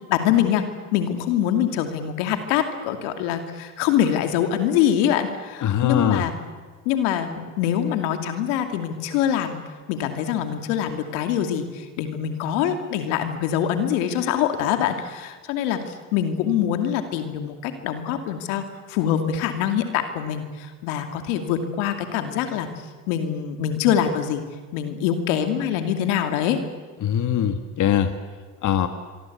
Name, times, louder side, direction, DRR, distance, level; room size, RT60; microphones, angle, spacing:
voice 1, 0.1-0.6 0.9-6.3 6.9-9.6 9.9-15.8 16.1-22.7 23.1-24.4 24.7-26.6, left 9 dB, 85° left, 7 dB, 2.5 m, -24 dB
voice 2, 5.6-6.3 27.0-28.1 28.6-28.9, left 9 dB, 55° left, 8 dB, 1.8 m, -21 dB
24.0 x 24.0 x 8.5 m, 1.4 s
supercardioid pair, 70°, 36 cm